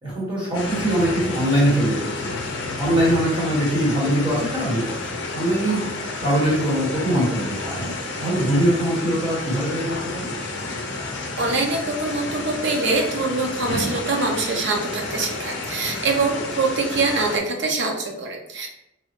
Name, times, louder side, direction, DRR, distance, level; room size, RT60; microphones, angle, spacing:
voice 1, 0.0-2.3 2.8-5.0 5.3-5.9 6.2-7.9 8.2-10.3, right 1 dB, 25° right, -8 dB, 1.3 m, -22 dB
sound 1, 0.5-17.4, left 3 dB, 65° left, 0.5 m, -31 dB
voice 2, 11.4-18.7, right 3 dB, 65° right, 1 dB, 0.6 m, -24 dB
3.0 x 2.3 x 3.0 m, 0.84 s
head